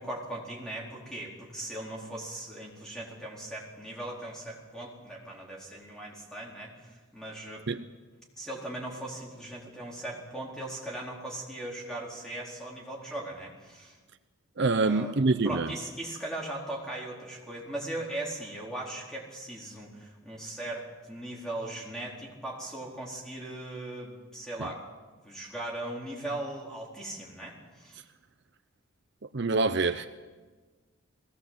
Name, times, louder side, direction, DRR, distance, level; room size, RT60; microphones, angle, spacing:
voice 1, 0.0-7.7 8.4-14.0 14.8-15.2 15.4-24.8 25.2-28.0, right 1 dB, 5° left, -3 dB, 4.4 m, -39 dB
voice 2, 14.6-15.7 24.6-24.7 29.3-30.1, right 3 dB, 55° right, 9 dB, 0.7 m, -26 dB
20.5 x 18.0 x 7.8 m, 1.3 s
head